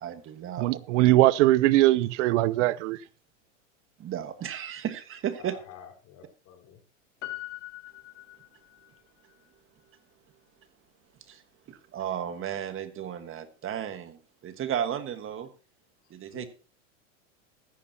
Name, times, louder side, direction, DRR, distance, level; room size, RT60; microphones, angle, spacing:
voice 1, 0.0-0.8 4.0-5.5 11.9-14.2 14.4-15.5 16.1-16.5, right 9 dB, 35° right, 1.5 m, -33 dB
voice 2, 0.6-3.0, right 16 dB, 70° right, 0.7 m, -21 dB
voice 3, 5.4-6.8 16.3-16.5, left 10 dB, 50° left, 4.2 m, -48 dB
Piano, 7.2-9.0 9.3-9.4, left 18 dB, 75° left, 2.2 m, -42 dB
15.0 x 13.5 x 2.9 m
hypercardioid pair, 105°, 38 cm